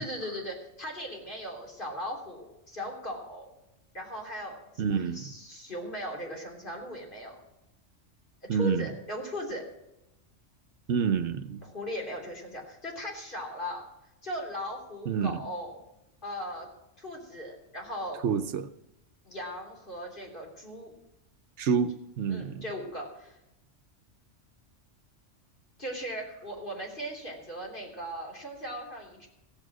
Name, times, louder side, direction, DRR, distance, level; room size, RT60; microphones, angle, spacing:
voice 1, 0.0-3.5 3.9-7.4 8.5-9.6 11.6-13.8 14.2-15.8 16.2-16.7 17.0-18.2 19.3-20.9 22.3-23.4 25.8-29.3, equal, 45° left, -1 dB, 3.7 m, -38 dB
voice 2, 4.8-5.3 8.5-8.9 10.9-11.6 15.1-15.4 18.2-18.7 21.6-22.6, right 6 dB, 70° right, 10 dB, 1.0 m, -28 dB
15.5 x 8.8 x 6.2 m, 0.88 s
omnidirectional pair, 1.2 m